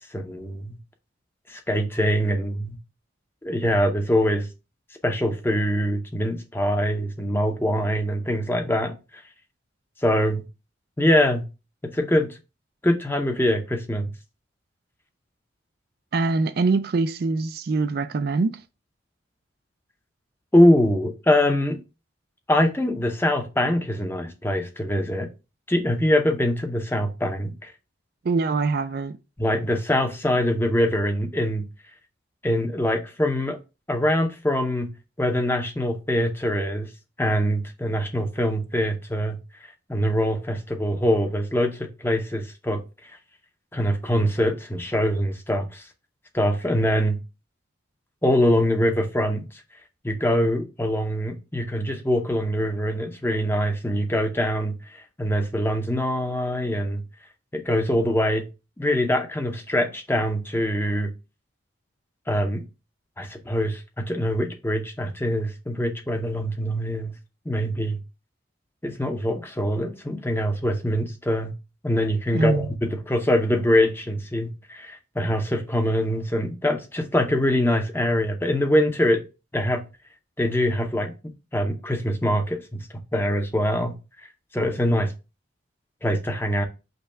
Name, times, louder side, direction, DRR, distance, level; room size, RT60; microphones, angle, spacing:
voice 1, 0.1-0.8 1.5-2.8 3.4-4.5 5.0-9.2 10.0-10.4 11.0-11.5 11.9-12.3 12.8-14.1 20.5-21.8 22.5-25.3 25.7-27.7 29.4-31.7 32.4-33.6 33.9-34.9 35.2-36.9 37.2-39.4 39.9-42.8 43.7-45.8 46.3-47.2 48.2-49.5 50.0-57.0 57.5-58.4 58.8-61.1 62.3-62.6 63.2-67.1 67.5-68.0 68.8-71.5 71.8-79.2 79.5-79.8 80.4-82.8 83.1-83.9 84.5-85.1 86.0-86.7, equal, 10° left, 0.6 m, -23 dB
voice 2, 16.1-18.6 28.2-29.2 72.3-72.7, right 3 dB, 55° right, 0.4 m, -23 dB
5.3 x 2.3 x 4.3 m
head